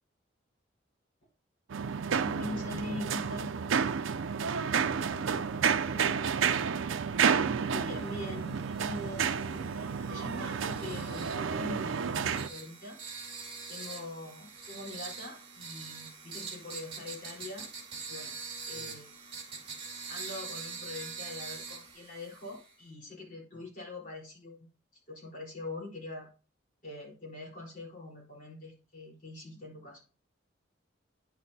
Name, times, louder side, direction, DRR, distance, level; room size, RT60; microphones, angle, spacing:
sound 1, 1.7-12.5, right 6 dB, 90° right, 0.5 m, -30 dB
voice 1, 2.2-3.5 7.7-9.8 10.1-13.0 13.7-17.7 18.1-18.4 18.7-19.1 20.1-24.7 24.9-26.3 26.8-30.0, left 2 dB, 40° left, -4 dB, 3.9 m, -43 dB
voice 2, 4.6-5.5 5.9-6.8 14.2-14.3 18.5-19.0, left 1 dB, 70° left, -2 dB, 1.9 m, -51 dB
sound 2, 7.8-22.7, right 5 dB, 30° right, 2.3 m, -44 dB
9.8 x 6.4 x 2.7 m, 0.35 s
head